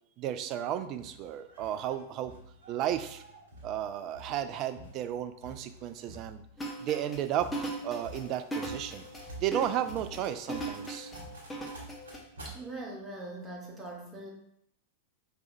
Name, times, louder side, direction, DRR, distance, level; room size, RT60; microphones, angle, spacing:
voice 1, 0.2-2.3 2.7-3.2 3.6-6.4 6.8-9.1 9.4-11.1, right 11 dB, 40° right, 10 dB, 0.3 m, -33 dB
sound 1, 0.7-12.5, right 1 dB, 70° right, 1.0 m, -49 dB
sound 2, 6.6-12.2, right 2 dB, 10° left, 1.0 m, -38 dB
voice 2, 12.4-14.3, right 2 dB, 15° right, -2 dB, 1.2 m, -41 dB
4.7 x 3.4 x 2.5 m, 0.71 s
figure-of-eight pair, 90°, 0 cm